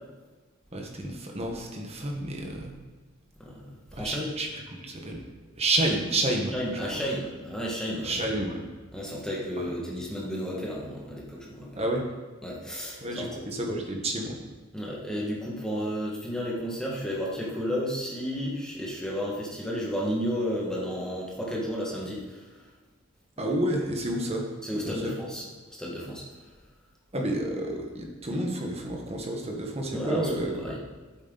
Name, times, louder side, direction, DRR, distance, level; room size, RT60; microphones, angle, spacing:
voice 1, 0.7-2.7 3.9-5.2 5.6-6.5 6.9-7.0 8.0-8.6 9.6-9.7 11.7-12.0 13.0-14.4 23.4-24.5 24.8-25.1 27.1-30.7, right 1 dB, 30° right, 1 dB, 1.5 m, -30 dB
voice 2, 3.4-4.3 6.5-8.2 8.9-11.8 12.4-13.3 14.7-22.4 24.6-25.5 25.8-26.2 29.9-30.8, equal, 5° left, -4 dB, 1.9 m, -32 dB
10.0 x 8.5 x 4.1 m, 1.3 s
head